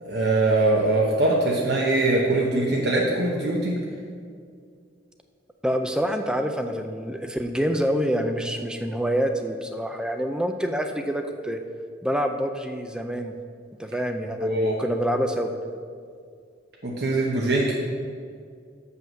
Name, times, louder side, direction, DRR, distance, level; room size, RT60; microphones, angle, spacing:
voice 1, 0.0-3.8 14.4-14.8 16.8-17.7, right 2 dB, 55° right, -2 dB, 0.9 m, -22 dB
voice 2, 5.6-11.6 12.0-13.3 13.8-15.5, equal, 5° right, 6 dB, 0.4 m, -26 dB
7.5 x 5.6 x 6.3 m, 2.3 s
head